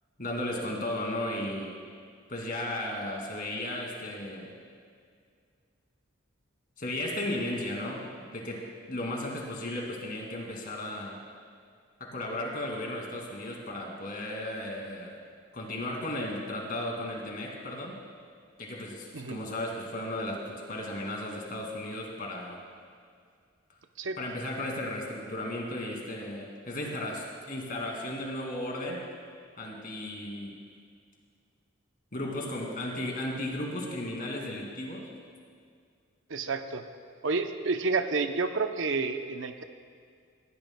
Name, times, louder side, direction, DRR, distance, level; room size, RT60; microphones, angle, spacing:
voice 1, 0.2-1.7 2.3-4.5 6.8-11.2 12.0-15.2 15.5-18.0 18.6-22.6 24.2-29.0 29.6-30.6 32.1-35.1, left 1 dB, 45° left, -1 dB, 2.3 m, -35 dB
voice 2, 36.3-36.8 37.2-39.6, right 4 dB, 65° right, 7 dB, 0.7 m, -30 dB
19.5 x 15.5 x 2.2 m, 2.2 s
head